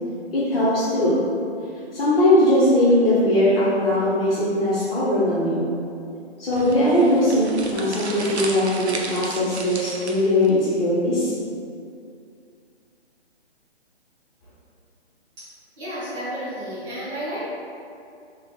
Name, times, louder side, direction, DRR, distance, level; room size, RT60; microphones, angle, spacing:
voice 1, 0.3-1.2 1.9-5.7 6.4-11.3, left 1 dB, 60° left, -10 dB, 1.1 m, -20 dB
sound 1, 6.5-10.5, right 2 dB, 80° right, 0.7 m, -34 dB
voice 2, 15.8-17.5, equal, 20° right, -14 dB, 1.3 m, -31 dB
3.4 x 3.4 x 3.1 m, 2.5 s
figure-of-eight pair, 140°, 33 cm